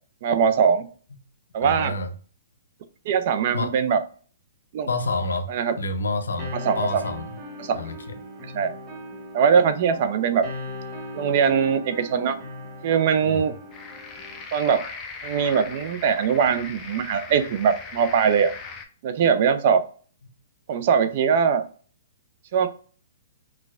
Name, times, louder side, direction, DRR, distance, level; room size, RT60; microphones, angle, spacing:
voice 1, 0.2-0.9 1.5-1.9 3.1-4.0 4.7-4.9 5.5-5.8 6.7-7.0 7.6-7.8 8.5-8.7 9.3-10.4 11.1-12.4 12.8-13.5 14.5-14.9 15.2-18.5 19.0-19.9 20.7-21.6 22.5-22.7, right 7 dB, 50° right, 0.5 m, -21 dB
voice 2, 1.6-2.1 3.5-3.8 4.9-5.5 5.8-7.3 7.7-8.2 13.2-13.5, left 2 dB, 90° left, 0.6 m, -28 dB
sound 1, 6.4-14.4, left 1 dB, 25° right, 1.1 m, -38 dB
sound 2, 13.7-18.9, left 5 dB, 25° left, 0.5 m, -39 dB
4.2 x 2.3 x 2.4 m
hypercardioid pair, 140°, 0 cm